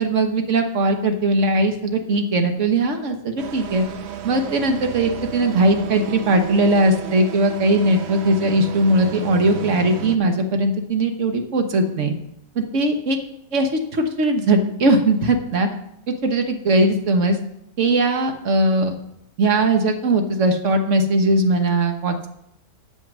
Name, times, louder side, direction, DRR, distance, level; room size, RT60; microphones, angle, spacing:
voice 1, 0.0-3.8 4.2-12.1 12.5-13.2 13.5-15.7 16.1-17.4 17.8-18.9 19.4-22.3, right 2 dB, 50° right, 5 dB, 1.3 m, -19 dB
sound 1, 3.4-10.2, right 8 dB, 65° right, 0.6 m, -33 dB
8.4 x 7.0 x 6.1 m, 0.76 s
omnidirectional pair, 1.8 m